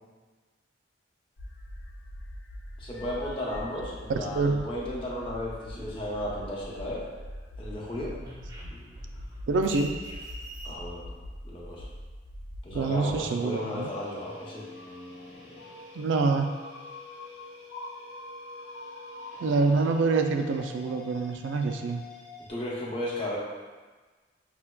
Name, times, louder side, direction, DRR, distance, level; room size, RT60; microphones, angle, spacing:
sound 1, 1.4-13.2 13.7-19.7, left 1 dB, 80° left, 0.4 m, -43 dB
voice 1, 2.8-7.0 7.6-8.1 10.6-11.0 11.4-11.9 12.6-14.6 22.5-23.4, left 1 dB, 30° left, -6 dB, 0.7 m, -34 dB
voice 2, 4.1-4.7 9.5-9.9 12.7-13.9 15.9-16.5 19.4-22.0, right 4 dB, 80° right, 5 dB, 0.3 m, -26 dB
sound 2, 5.7-7.1 7.4-10.8, right 1 dB, 20° right, 0.5 m, -45 dB
sound 3, 13.4-22.5, left 3 dB, 60° left, 0.9 m, -48 dB
5.6 x 2.2 x 2.2 m, 1.4 s
head